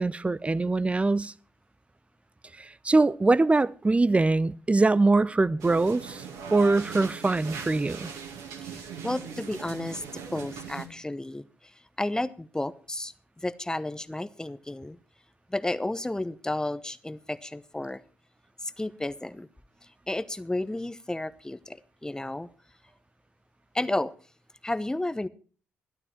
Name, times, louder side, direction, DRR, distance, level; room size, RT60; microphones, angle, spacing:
voice 1, 0.0-1.3 2.6-6.2 6.5-8.1, right 3 dB, 20° right, 0.6 m, -23 dB
sound 1, 5.6-10.9, right 6 dB, 70° right, 2.1 m, -40 dB
voice 2, 8.6-11.5 12.0-15.0 15.5-18.0 18.6-19.5 20.1-22.5 23.7-24.1 24.6-25.3, left 1 dB, 10° left, 0.9 m, -32 dB
13.5 x 12.0 x 4.4 m
figure-of-eight pair, 45°, 6 cm